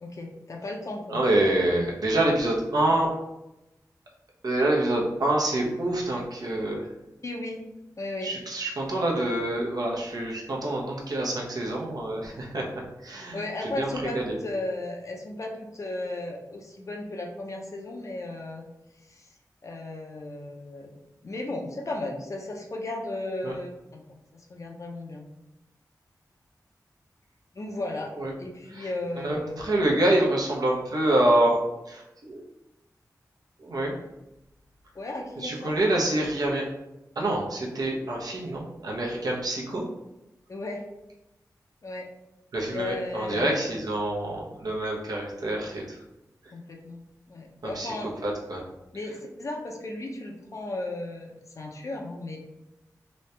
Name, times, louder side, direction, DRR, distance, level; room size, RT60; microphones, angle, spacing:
voice 1, 0.0-1.2 7.2-7.7 8.0-8.3 13.3-18.7 19.1-19.3 19.6-20.9 21.2-25.2 27.5-28.1 28.4-29.7 34.9-35.7 40.5-40.9 41.8-42.1 42.7-43.6 46.5-47.0 47.3-48.1 48.9-52.4, left 2 dB, 50° left, 1 dB, 0.6 m, -35 dB
voice 2, 1.1-3.1 4.4-6.8 8.2-12.6 13.0-13.4 13.8-14.4 23.4-23.5 28.2-28.3 28.7-28.9 29.2-31.6 31.9-32.4 33.6-33.9 35.4-36.6 37.2-39.8 42.5-45.8 47.6-47.9 48.2-48.6, right 1 dB, 75° right, -2 dB, 0.8 m, -26 dB
3.1 x 2.8 x 3.2 m, 0.94 s
wide cardioid pair, 95°, 7 cm